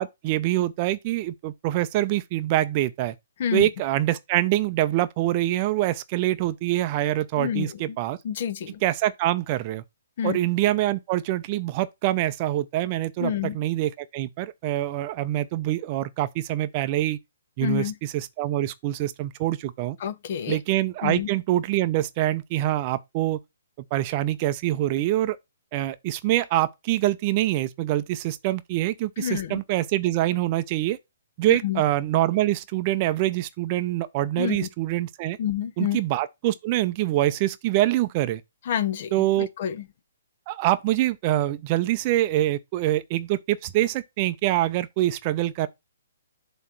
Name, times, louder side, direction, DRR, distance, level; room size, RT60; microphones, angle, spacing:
voice 1, 0.0-3.1 3.5-8.2 8.8-9.8 10.2-17.2 17.6-20.0 20.5-23.4 23.9-25.4 25.7-31.0 31.4-35.4 35.8-38.4 39.1-39.5 40.5-45.7, right 15 dB, 35° right, 0.5 m, -25 dB
voice 2, 7.4-7.7 8.2-8.8 10.2-10.4 13.2-13.6 17.6-17.9 20.0-20.6 21.0-21.3 29.2-29.6 31.5-31.8 34.4-34.7 35.4-36.0 38.7-39.8, left 9 dB, 50° left, 0.8 m, -28 dB
7.4 x 3.1 x 5.9 m
figure-of-eight pair, 135°, 0 cm